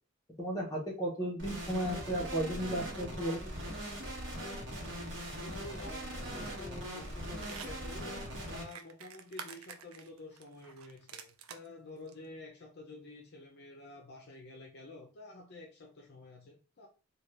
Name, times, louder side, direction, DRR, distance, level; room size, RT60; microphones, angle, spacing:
voice 1, 0.4-3.5, right 1 dB, 15° left, -3 dB, 0.9 m, -34 dB
sound 1, 1.4-8.6, equal, 60° right, 1.0 m, -41 dB
voice 2, 5.4-16.9, left 2 dB, 50° left, 1 dB, 0.5 m, -50 dB
sound 2, 6.9-11.7 12.1-12.2, right 7 dB, 80° right, 0.4 m, -49 dB
2.7 x 2.3 x 3.2 m, 0.35 s
head